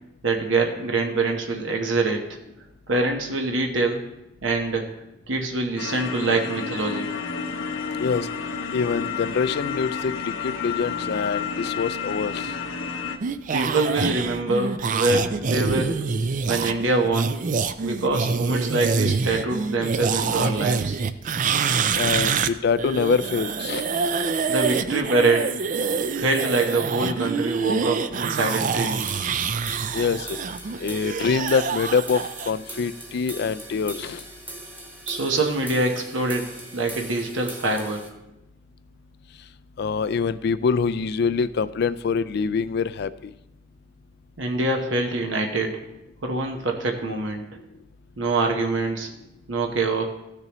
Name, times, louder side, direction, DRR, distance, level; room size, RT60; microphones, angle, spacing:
voice 1, 0.2-2.4 2.9-4.0 4.4-4.9 5.3-7.1 13.5-15.9 16.5-17.4 17.8-21.0 24.5-25.6 26.1-29.1 35.1-38.0 44.4-45.8 46.2-47.5 48.2-49.1 49.5-50.0, right 2 dB, 75° right, 2 dB, 1.0 m, -24 dB
sound 1, 5.8-13.2, left 5 dB, 90° left, 0.8 m, -30 dB
voice 2, 8.0-8.3 8.7-12.5 21.9-23.9 29.9-30.4 30.8-34.2 39.8-43.3, left 5 dB, 55° left, 14 dB, 0.3 m, -25 dB
sound 2, 13.2-22.5 22.8-32.5, right 5 dB, 40° right, 0.4 m, -26 dB
sound 3, 28.5-38.1, right 2 dB, 10° right, 1.2 m, -40 dB
15.0 x 6.7 x 3.0 m, 0.91 s
head